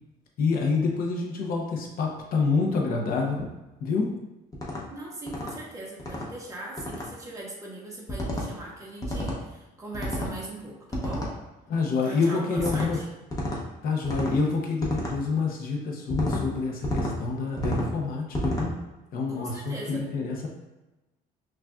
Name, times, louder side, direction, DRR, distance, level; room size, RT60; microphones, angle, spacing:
voice 1, 0.4-3.5 3.8-4.1 11.7-13.0 13.8-18.8 19.1-20.5, left 4 dB, 60° left, 0 dB, 0.7 m, -27 dB
sound 1, 4.5-4.8 5.3-5.5 6.0-6.3 6.8-7.1 8.1-8.5 9.0-9.4 9.9-10.3 10.9-11.3 12.6-12.9 13.3-13.6 14.0-14.4 14.8-15.1 16.1-16.4 16.8-17.1 17.6-17.9 18.3-18.7, equal, 20° left, 0.8 m, -30 dB
voice 2, 4.9-11.3 12.0-13.1 19.3-20.1, right 2 dB, 20° right, -4 dB, 1.1 m, -40 dB
5.8 x 2.4 x 2.3 m, 1.0 s
cardioid pair, 110°, 17 cm